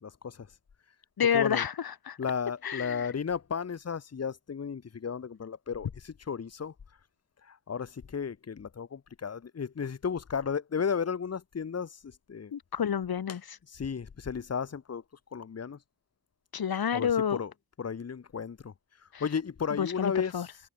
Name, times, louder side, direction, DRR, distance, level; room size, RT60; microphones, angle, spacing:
voice 1, 0.0-0.5 1.2-1.7 2.2-6.7 7.4-12.5 13.3-13.4 13.7-15.0 15.3-15.8 16.9-17.5 17.8-18.7 19.2-20.6, left 6 dB, 45° left, 1.3 m, -34 dB
voice 2, 1.2-2.2 2.6-3.1 12.5-13.6 16.5-17.4 19.1-19.2 19.7-20.5, left 8 dB, 75° left, 2.9 m, -29 dB
cardioid pair, 70°, 37 cm